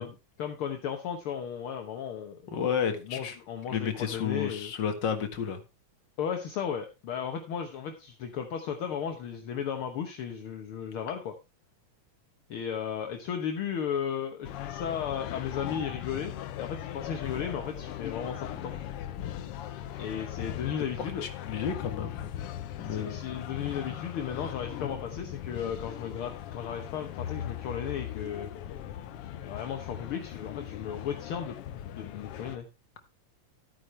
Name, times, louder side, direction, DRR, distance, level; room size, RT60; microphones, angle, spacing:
voice 1, 0.0-2.4 2.9-4.7 6.2-11.3 12.5-16.3 16.6-18.7 20.0-21.2 22.8-28.5 29.4-31.6 31.9-32.6, left 8 dB, 60° left, 1.5 m, -35 dB
voice 2, 2.5-3.4 3.7-5.6 21.0-22.3 22.8-23.2 23.7-24.5, left 7 dB, 45° left, 1.8 m, -32 dB
sound 1, 14.4-32.6, left 11 dB, 75° left, 1.3 m, -39 dB
13.5 x 9.1 x 3.2 m
omnidirectional pair, 3.6 m